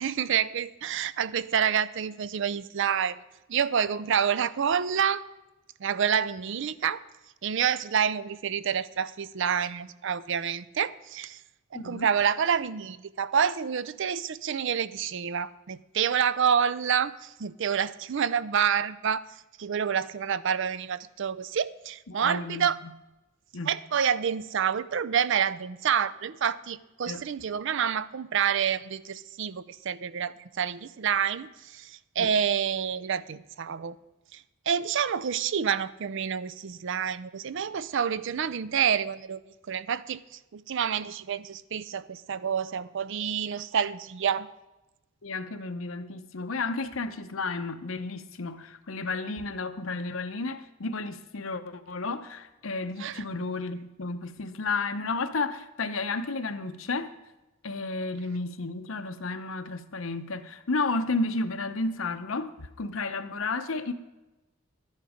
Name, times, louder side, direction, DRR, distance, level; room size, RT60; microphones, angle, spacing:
voice 1, 0.0-3.2 3.5-5.2 5.8-7.0 7.4-11.4 11.7-19.2 19.6-22.8 23.7-34.0 34.3-39.4 39.7-40.2 40.5-44.5 53.0-53.2, right 7 dB, 65° right, 0.5 m, -28 dB
voice 2, 11.7-12.1 22.1-22.9 23.5-23.7 27.1-27.2 32.2-32.3 45.2-57.1 57.6-63.9, left 3 dB, 80° left, 0.8 m, -32 dB
12.5 x 10.5 x 5.0 m
head